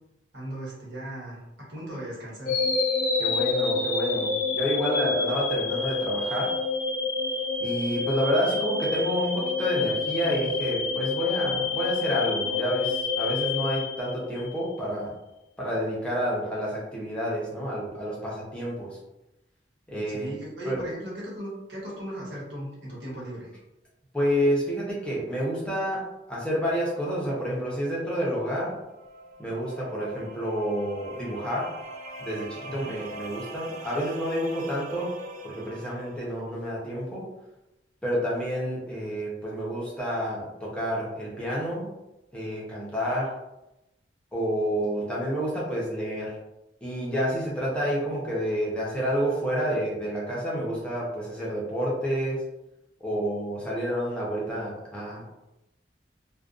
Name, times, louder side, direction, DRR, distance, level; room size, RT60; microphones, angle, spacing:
voice 1, 0.3-2.6 20.1-23.5 32.6-32.9, right 1 dB, 90° right, -5 dB, 1.1 m, -37 dB
sound 1, 2.5-14.6, left 4 dB, 55° left, 0.5 m, -28 dB
voice 2, 3.2-6.5 7.6-15.1 15.6-19.0 19.9-20.3 20.6-20.8 24.1-28.8 29.4-31.7 32.2-35.1 35.4-37.3 38.0-41.9 42.3-43.3 44.3-46.4 46.8-52.4 53.0-55.2, equal, 5° left, -6 dB, 0.6 m, -29 dB
sound 2, 28.6-36.3, right 2 dB, 45° right, 0.4 m, -41 dB
2.5 x 2.1 x 2.4 m, 0.94 s
head